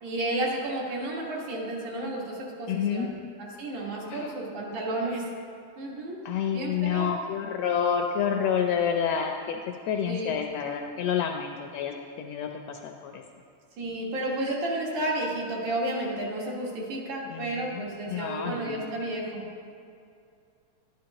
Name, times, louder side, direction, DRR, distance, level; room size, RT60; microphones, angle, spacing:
voice 1, 0.0-3.1 3.4-5.3 5.8-6.2 6.5-7.1 10.1-10.3 13.8-19.4, right 1 dB, 80° right, -3 dB, 3.0 m, -32 dB
voice 2, 2.7-3.1 4.1-4.4 6.2-9.6 9.9-13.2 17.3-18.8, left 8 dB, 80° left, 3 dB, 1.5 m, -29 dB
11.5 x 11.0 x 2.9 m, 2.4 s
omnidirectional pair, 3.3 m